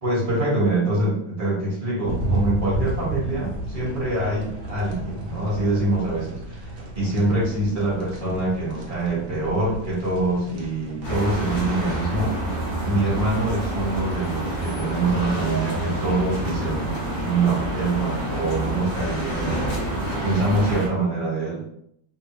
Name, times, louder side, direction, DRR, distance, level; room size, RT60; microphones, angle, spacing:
voice 1, 0.0-12.4 12.8-16.9 17.2-19.8 20.1-21.6, right 2 dB, 25° right, -6 dB, 0.9 m, -25 dB
sound 1, 2.0-12.0, right 1 dB, 65° right, 1.0 m, -32 dB
sound 2, 11.0-20.9, right 1 dB, 65° left, 0.5 m, -28 dB
2.9 x 2.1 x 2.8 m, 0.72 s
omnidirectional pair, 1.9 m